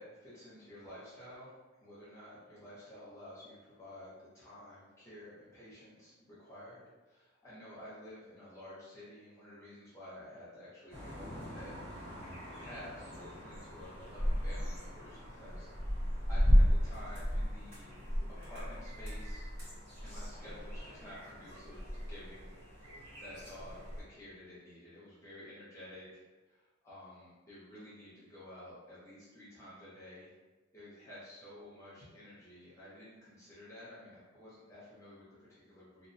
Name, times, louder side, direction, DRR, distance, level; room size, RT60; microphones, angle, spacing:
voice 1, 0.0-1.5 1.8-11.7 12.4-15.7 16.3-17.9 18.3-19.5 20.0-22.6 23.2-30.3 30.7-36.1, left 1 dB, 15° left, -10 dB, 0.6 m, -51 dB
sound 1, 10.9-24.0, equal, 80° right, 1.2 m, -34 dB
2.4 x 2.1 x 2.6 m, 1.2 s
head